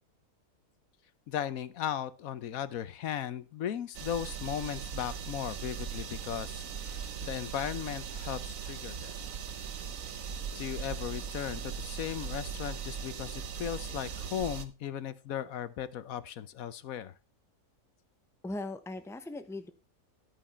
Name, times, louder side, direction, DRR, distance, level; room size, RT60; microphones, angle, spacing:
voice 1, 1.3-9.1 10.5-17.1, left 10 dB, 80° left, 15 dB, 1.2 m, -37 dB
sound 1, 3.9-14.7, right 7 dB, 70° right, 1.4 m, -39 dB
voice 2, 18.4-19.7, left 2 dB, ahead, 9 dB, 0.9 m, -39 dB
11.0 x 8.8 x 4.4 m, 0.30 s
omnidirectional pair, 1.5 m